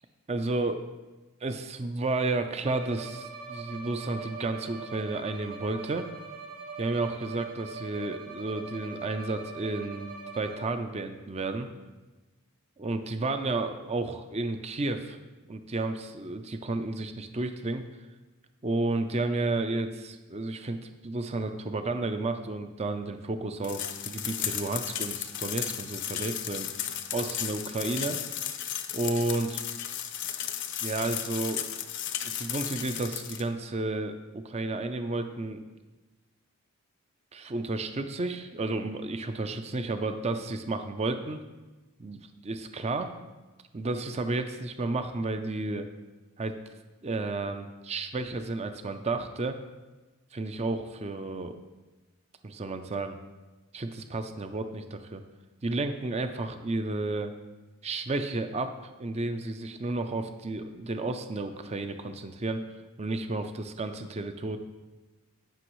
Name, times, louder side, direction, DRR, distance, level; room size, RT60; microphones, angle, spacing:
voice 1, 0.3-0.8 1.4-6.1 6.8-11.7 12.8-15.2 15.5-17.8 18.6-26.7 27.1-28.2 28.9-29.6 30.8-31.6 32.4-35.6 37.3-41.4 42.0-43.1 43.7-45.9 46.4-46.6 47.0-49.6 50.3-51.6 52.4-53.2 53.7-55.2 55.6-57.3 57.8-62.6 63.0-64.6, right 2 dB, 30° right, 8 dB, 0.5 m, -32 dB
Bowed string instrument, 2.7-10.9, right 5 dB, 65° right, 1.3 m, -42 dB
sound 1, 23.6-33.4, left 10 dB, 55° left, 0.6 m, -34 dB
17.5 x 6.0 x 3.1 m, 1.2 s
head